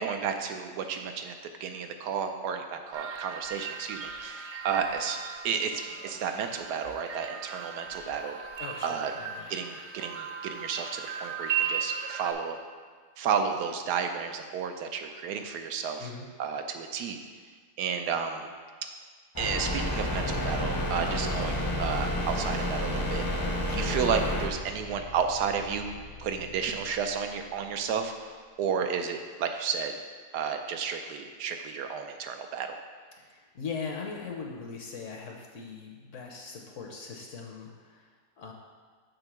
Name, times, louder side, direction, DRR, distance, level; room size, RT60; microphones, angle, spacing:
voice 1, 0.0-1.3 1.6-5.2 5.4-8.4 8.8-9.1 9.5-12.6 13.2-16.1 16.4-17.2 17.8-18.5 19.4-23.5 23.7-25.9 26.2-30.0 30.3-32.8, right 6 dB, 80° right, 6 dB, 1.2 m, -32 dB
sound 1, 2.9-12.3, right 7 dB, 65° right, 0.7 m, -37 dB
voice 2, 8.6-9.5 16.0-16.3 23.7-23.9 33.2-38.5, left 5 dB, 60° left, 1 dB, 0.9 m, -40 dB
sound 2, 19.4-24.5, left 1 dB, 20° left, 0.5 m, -30 dB
sound 3, 22.0-28.1, left 3 dB, 80° left, 1.6 m, -48 dB
6.7 x 3.5 x 6.1 m, 1.5 s
omnidirectional pair, 1.7 m